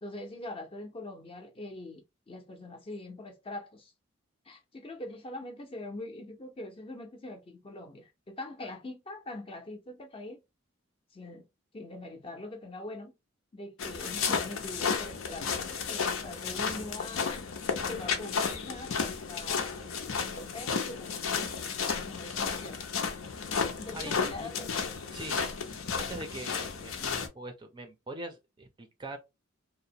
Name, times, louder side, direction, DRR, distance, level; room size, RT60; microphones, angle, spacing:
voice 1, 0.0-3.9 4.5-10.4 11.1-11.5 11.7-13.1 13.5-17.4 17.8-22.8 23.8-24.7 25.3-25.5, left 2 dB, 25° left, 0.5 m, -43 dB
sound 1, 13.8-27.3, left 5 dB, 85° left, 0.6 m, -33 dB
voice 2, 23.9-24.5 25.1-25.4 26.0-29.2, right 2 dB, 25° right, 0.4 m, -42 dB
2.8 x 2.0 x 2.7 m
head